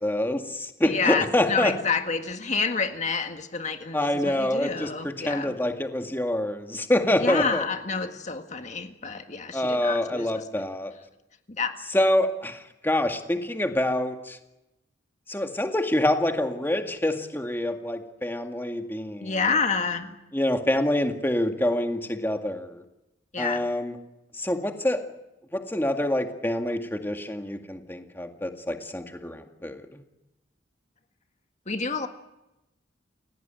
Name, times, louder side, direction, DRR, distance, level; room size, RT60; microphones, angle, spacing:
voice 1, 0.0-1.7 3.9-7.6 9.5-10.9 11.9-14.4 15.3-19.6 20.3-22.8 23.4-24.0 24.4-25.0 25.5-30.0, left 1 dB, 10° left, 5 dB, 2.0 m, -26 dB
voice 2, 0.8-5.6 7.1-10.4 11.6-11.7 19.2-20.1 23.3-23.7 31.7-32.1, left 5 dB, 40° left, 6 dB, 1.8 m, -28 dB
29.0 x 17.5 x 9.1 m, 0.96 s
head